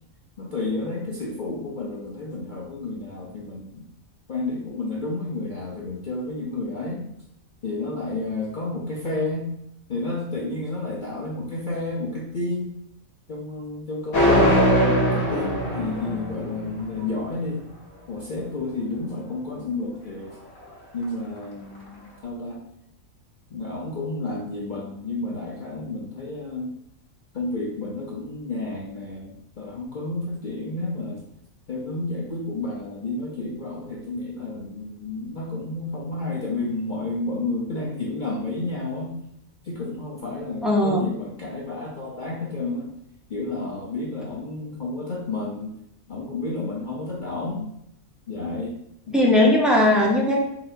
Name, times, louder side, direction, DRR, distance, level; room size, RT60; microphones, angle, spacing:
voice 1, 0.4-3.9 4.3-7.1 7.6-9.5 9.9-12.7 13.3-17.7 18.1-20.4 20.9-22.6 23.5-26.7 27.3-31.2 31.7-39.2 39.6-42.9 43.3-45.7 46.1-47.7 48.3-48.8 49.1-49.3, left 2 dB, 55° left, -3 dB, 0.5 m, -31 dB
sound 1, 14.1-17.1, equal, 80° left, 1.6 m, -21 dB
voice 2, 40.6-41.0 49.1-50.4, left 1 dB, ahead, -4 dB, 0.5 m, -18 dB
4.2 x 3.9 x 2.5 m, 0.76 s
omnidirectional pair, 1.5 m